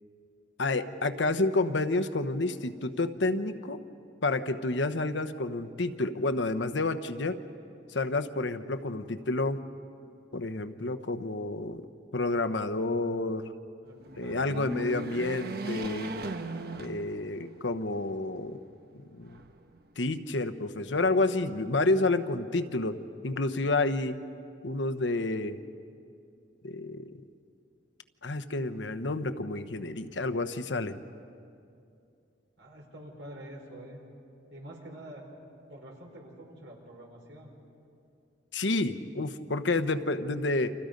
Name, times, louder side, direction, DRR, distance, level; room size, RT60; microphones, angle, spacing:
voice 1, 0.6-3.8 4.2-7.4 7.9-9.6 10.3-11.8 12.1-13.5 14.2-16.1 16.8-18.6 18.9-19.4 20.0-24.2 24.6-25.6 26.6-27.1 28.2-31.0 38.5-40.7, left 2 dB, 85° left, 10 dB, 1.0 m, -29 dB
sound 1, 14.0-17.6 18.1-18.2 19.3-20.0, right 2 dB, 55° right, 1.2 m, -38 dB
voice 2, 14.2-14.5 32.6-34.0 34.5-35.2 35.7-37.5, right 1 dB, 80° right, 0 dB, 4.9 m, -46 dB
30.0 x 26.5 x 5.3 m, 2.5 s
head